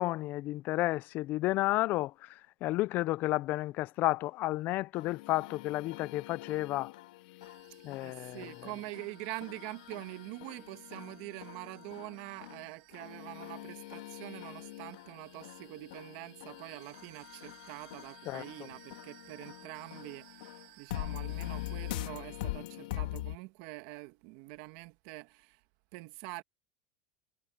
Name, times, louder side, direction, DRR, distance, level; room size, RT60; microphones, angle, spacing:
voice 1, 0.0-6.9 7.8-8.5 18.3-18.4, left 18 dB, 45° left, 0.5 m, -32 dB
sound 1, 4.9-23.4, left 17 dB, 85° left, 2.1 m, -44 dB
sound 2, 7.4-22.0, right 23 dB, 75° right, 5.0 m, -60 dB
voice 2, 7.7-25.6 25.9-26.4, right 22 dB, 60° right, 1.5 m, -45 dB
supercardioid pair, 145°, 4 cm